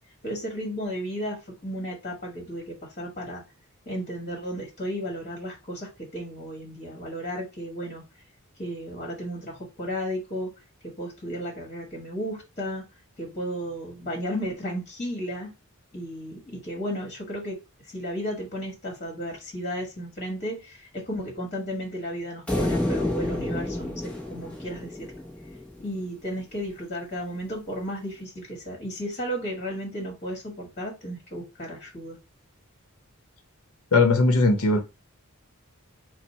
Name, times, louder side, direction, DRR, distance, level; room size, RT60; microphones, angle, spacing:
voice 1, 0.2-3.4 3.8-8.0 8.6-10.5 10.8-12.8 13.2-15.5 15.9-25.1 25.8-32.2, equal, 35° left, 1.3 m, -34 dB
sound 1, 22.5-25.9, left 1 dB, 5° left, 0.9 m, -29 dB
voice 2, 33.9-34.8, left 3 dB, 85° left, 0.7 m, -19 dB
4.4 x 2.1 x 4.1 m
head